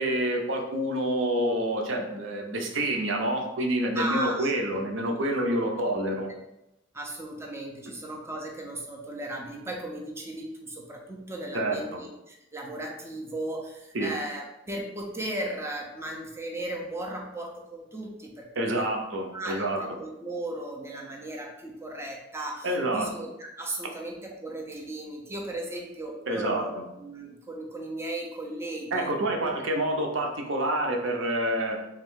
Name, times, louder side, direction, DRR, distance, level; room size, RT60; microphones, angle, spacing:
voice 1, 0.0-6.3 11.5-12.0 13.9-14.1 18.6-19.8 22.6-23.1 26.3-26.6 28.9-31.8, right 1 dB, 85° right, 2 dB, 0.6 m, -27 dB
voice 2, 3.9-4.8 5.5-5.6 6.9-18.5 18.7-18.9 19.3-29.1, right 1 dB, 15° right, -1 dB, 0.5 m, -36 dB
3.6 x 2.6 x 3.6 m, 0.89 s
head